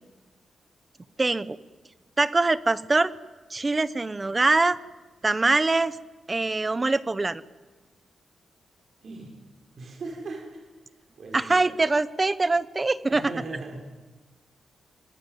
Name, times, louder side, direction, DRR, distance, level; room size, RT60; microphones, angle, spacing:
voice 1, 1.2-1.6 2.2-3.1 3.5-4.8 5.2-6.0 6.3-7.4 11.3-13.3, right 3 dB, 20° right, 15 dB, 0.9 m, -23 dB
voice 2, 9.0-9.4 9.8-10.7 11.2-11.7 13.1-13.8, right 3 dB, 50° right, 1 dB, 6.0 m, -38 dB
26.0 x 21.0 x 9.4 m, 1.2 s
wide cardioid pair, 175°, 0 cm